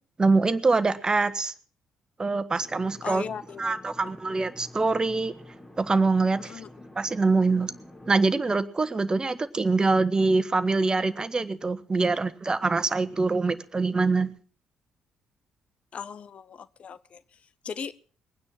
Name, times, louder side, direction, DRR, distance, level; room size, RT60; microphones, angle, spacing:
voice 1, 0.2-1.5 2.2-3.2 3.6-5.3 5.8-6.6 6.9-7.7 8.1-14.3, right 3 dB, 30° right, 13 dB, 1.4 m, -24 dB
sound 1, 2.6-8.1, left 1 dB, 20° left, 4.7 m, -48 dB
voice 2, 3.0-4.1 6.4-6.7 15.9-17.9, left 6 dB, 50° left, 17 dB, 0.8 m, -39 dB
21.5 x 9.6 x 5.9 m, 0.42 s
hypercardioid pair, 45°, 3 cm